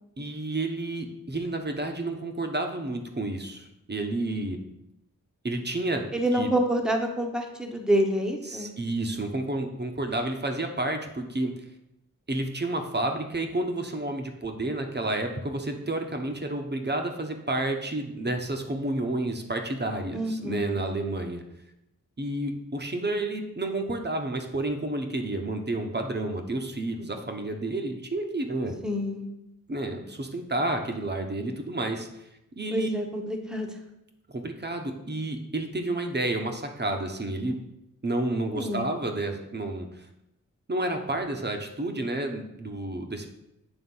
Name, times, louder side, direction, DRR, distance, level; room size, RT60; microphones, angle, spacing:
voice 1, 0.2-4.6 5.4-6.0 6.3-6.5 8.5-11.5 12.3-21.4 22.2-28.7 29.7-32.3 32.6-32.9 34.3-37.6 38.0-40.1 40.7-43.3, right 2 dB, 30° right, 4 dB, 1.0 m, -30 dB
voice 2, 6.1-8.7 20.1-20.7 28.8-29.3 32.7-33.7 38.5-38.8, equal, ahead, 3 dB, 1.1 m, -27 dB
7.9 x 3.5 x 5.5 m, 0.85 s
cardioid pair, 60°, 33 cm